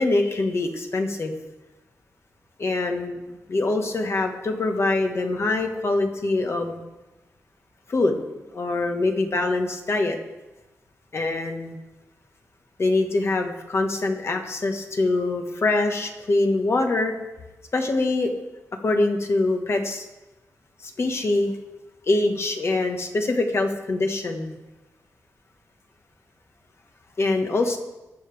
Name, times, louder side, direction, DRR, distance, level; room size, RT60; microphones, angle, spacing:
voice 1, 0.0-1.3 2.6-3.2 3.5-6.8 7.9-8.2 8.5-10.2 11.1-11.8 12.8-17.1 17.7-18.3 18.8-20.0 21.0-21.5 22.1-24.6 27.2-27.8, left 2 dB, 50° left, 4 dB, 1.4 m, -24 dB
21.0 x 7.0 x 3.5 m, 1.1 s
wide cardioid pair, 100°, 6 cm